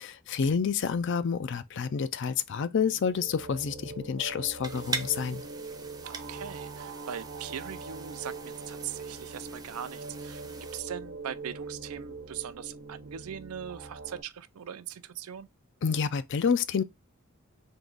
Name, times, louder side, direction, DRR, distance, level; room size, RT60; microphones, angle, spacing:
voice 1, 0.0-5.4 15.8-16.8, left 6 dB, 55° left, 0.4 m, -29 dB
sound 1, 2.6-14.2, right 3 dB, 60° right, 0.8 m, -42 dB
sound 2, 4.6-10.8, right 4 dB, 20° right, 0.6 m, -42 dB
voice 2, 6.1-10.4 10.7-15.5, right 9 dB, 90° right, 0.5 m, -40 dB
3.7 x 2.9 x 3.8 m
head